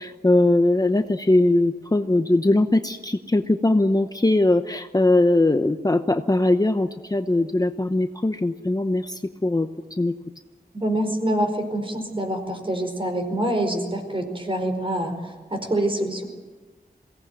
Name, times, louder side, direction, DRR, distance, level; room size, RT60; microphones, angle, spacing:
voice 1, 0.0-10.1, left 2 dB, 25° left, 8 dB, 0.9 m, -21 dB
voice 2, 10.7-16.2, right 1 dB, 35° right, 5 dB, 4.8 m, -26 dB
22.0 x 17.5 x 9.4 m, 1.3 s
wide cardioid pair, 75°, 16 cm